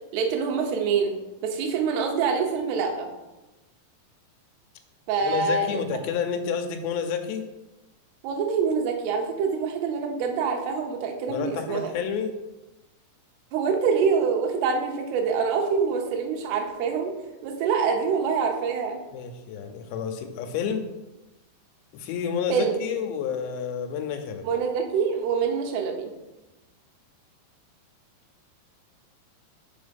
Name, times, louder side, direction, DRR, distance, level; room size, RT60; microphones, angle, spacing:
voice 1, 0.1-1.1 1.4-3.1 5.1-5.8 8.2-11.9 13.5-17.1 17.4-19.0 22.5-22.8 24.4-26.1, right 5 dB, 75° right, 2 dB, 2.8 m, -25 dB
voice 2, 5.2-7.4 11.3-12.4 19.1-20.9 21.9-24.5, left 7 dB, 80° left, 6 dB, 2.8 m, -30 dB
6.3 x 4.4 x 5.2 m, 1.0 s
omnidirectional pair, 5.2 m